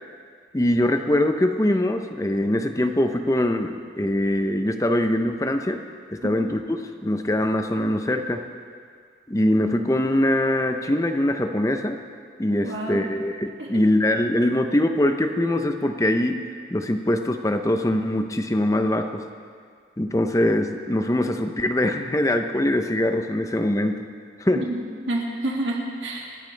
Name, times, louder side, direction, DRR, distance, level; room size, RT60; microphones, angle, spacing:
voice 1, 0.5-5.8 6.1-8.4 9.3-12.0 12.4-16.4 16.7-19.2 20.0-24.1 24.4-24.7, left 1 dB, 15° left, 6 dB, 0.6 m, -23 dB
voice 2, 12.6-13.0 13.6-13.7 24.5-24.8 25.1-26.3, right 1 dB, 90° right, -2 dB, 2.3 m, -28 dB
26.0 x 10.5 x 3.4 m, 2.1 s
head